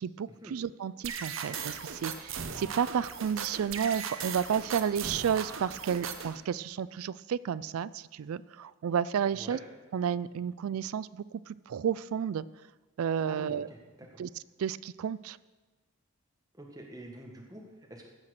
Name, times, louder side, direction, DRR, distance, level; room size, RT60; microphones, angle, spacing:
voice 1, 0.0-9.6 9.9-12.4 13.0-13.7 14.2-14.3 14.6-15.4, right 8 dB, 90° right, 18 dB, 0.3 m, -32 dB
sound 1, 1.0-6.4, right 6 dB, 70° right, 0.8 m, -38 dB
voice 2, 13.2-13.8 16.6-17.6 17.9-18.1, right 1 dB, 15° right, 0 dB, 1.5 m, -46 dB
16.0 x 5.8 x 6.5 m, 1.2 s
head